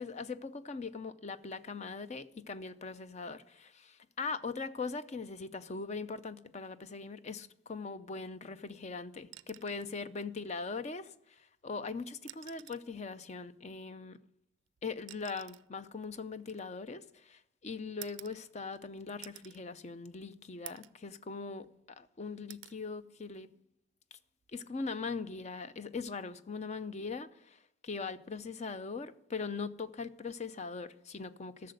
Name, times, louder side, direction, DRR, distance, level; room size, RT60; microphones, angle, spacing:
voice 1, 0.0-14.2 14.8-23.5 24.1-24.2 24.5-31.7, left 4 dB, 35° left, 0.5 m, -41 dB
sound 1, 9.2-10.0 11.4-11.5 12.2-12.9 14.1-17.2 18.0-18.8 19.2-19.6 20.1-20.2 20.7-21.0 21.5-22.1 22.5-22.8 24.3-24.5, right 16 dB, 65° right, 0.4 m, -52 dB
13.0 x 6.7 x 7.8 m
head